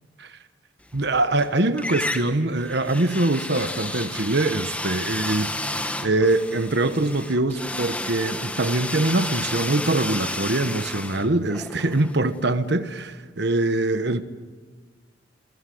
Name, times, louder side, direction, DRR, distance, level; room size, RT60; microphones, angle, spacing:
sound 1, 0.9-1.5 1.8-12.7, left 1 dB, 10° left, 1.4 m, -32 dB
voice 1, 0.9-12.9 13.4-14.2, right 2 dB, 65° right, 1.3 m, -23 dB
29.5 x 23.5 x 7.9 m
head